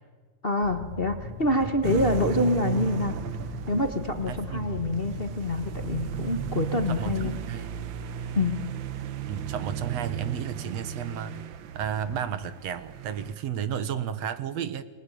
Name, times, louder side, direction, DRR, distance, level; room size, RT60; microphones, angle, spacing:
voice 1, 0.4-3.1 3.7-7.3 8.3-8.6, left 2 dB, 35° left, 6 dB, 1.0 m, -26 dB
sound 1, 0.6-7.3, left 3 dB, 55° left, 2.2 m, -40 dB
sound 2, 1.8-13.3, right 10 dB, 90° right, 1.0 m, -35 dB
voice 2, 4.3-4.9 6.9-7.8 9.3-11.4 11.7-14.8, right 8 dB, 65° right, 13 dB, 2.2 m, -32 dB
29.0 x 22.0 x 8.6 m, 1.4 s
omnidirectional pair, 3.4 m